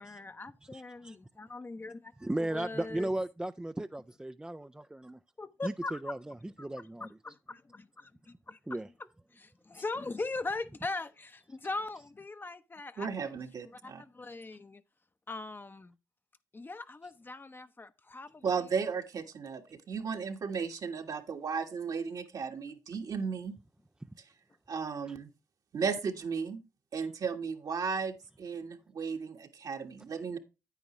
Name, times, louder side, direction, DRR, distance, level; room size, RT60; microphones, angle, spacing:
voice 1, 0.0-2.1 2.4-3.1 5.4-6.1 6.6-6.7 7.0-8.6 9.4-13.4 13.8-14.8 15.3-15.9 16.5-18.4, left 3 dB, 30° left, 0.8 m, -40 dB
voice 2, 0.7-1.2 2.2-5.2 5.6-7.1 8.7-8.9 27.0-27.1, right 1 dB, 10° right, 0.4 m, -36 dB
voice 3, 13.0-14.0 18.4-23.5 24.7-25.3 25.7-26.6 26.9-30.4, right 5 dB, 55° right, 1.5 m, -35 dB
9.4 x 9.1 x 3.1 m
supercardioid pair, 55°, 7 cm